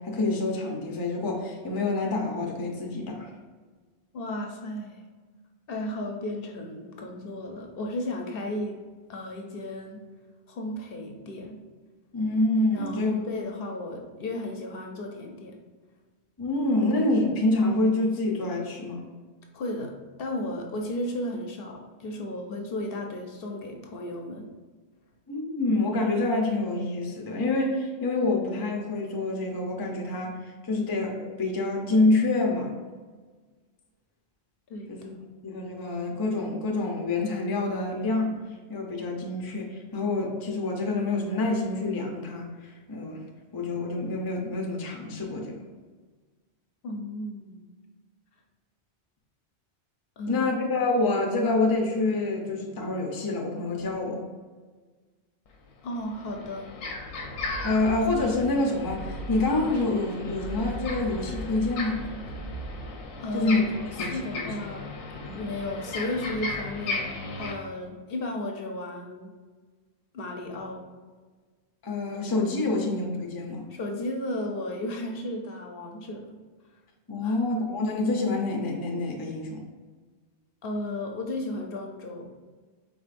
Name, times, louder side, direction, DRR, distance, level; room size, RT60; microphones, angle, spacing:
voice 1, 0.0-3.3 12.1-13.1 16.4-19.0 25.3-30.4 30.6-32.7 34.9-35.1 35.4-38.4 38.7-43.2 43.5-45.6 50.3-54.2 57.6-62.1 63.3-63.6 64.0-64.5 65.2-65.4 71.8-73.7 77.1-79.6, left 2 dB, 25° left, 1 dB, 0.5 m, -27 dB
voice 2, 4.1-5.0 5.7-8.8 9.1-10.0 10.5-11.6 12.7-15.6 19.5-24.5 34.7-34.9 46.8-47.6 50.2-50.5 55.8-56.7 63.2-64.9 65.3-67.1 67.4-69.3 70.1-70.8 73.7-76.4 77.2-77.4 80.6-82.3, left 1 dB, 60° left, 2 dB, 0.8 m, -34 dB
sound 1, 55.5-55.6 55.9-67.5, left 3 dB, 85° left, 1.0 m, -36 dB
sound 2, 57.1-63.0, right 2 dB, 60° right, 0.9 m, -39 dB
4.9 x 3.9 x 2.5 m, 1.4 s
omnidirectional pair, 1.1 m